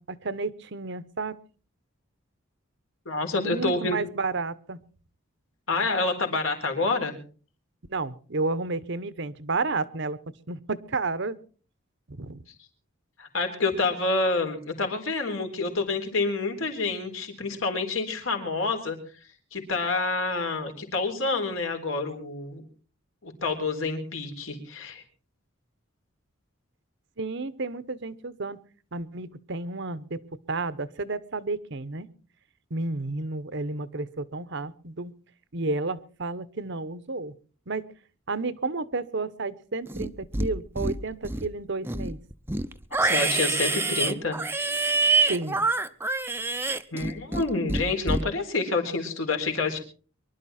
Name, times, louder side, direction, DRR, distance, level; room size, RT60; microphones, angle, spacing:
voice 1, 0.0-1.4 3.4-4.8 7.9-10.2 10.5-11.4 12.1-12.4 27.2-28.6 28.9-30.2 30.5-32.1 32.7-35.1 35.5-37.3 37.7-37.9 38.3-42.2 45.2-45.7, right 3 dB, 60° right, 16 dB, 1.0 m, -31 dB
voice 2, 3.1-4.0 5.7-7.1 13.2-19.0 19.5-22.6 23.2-25.0 42.9-44.4 46.9-49.8, left 3 dB, 75° left, 4 dB, 3.9 m, -28 dB
Livestock farm animals working animals, 39.9-40.5 40.8-41.5 41.8-47.4 47.7-48.2, right 3 dB, 10° right, 0.7 m, -26 dB
24.0 x 12.0 x 4.3 m, 0.41 s
head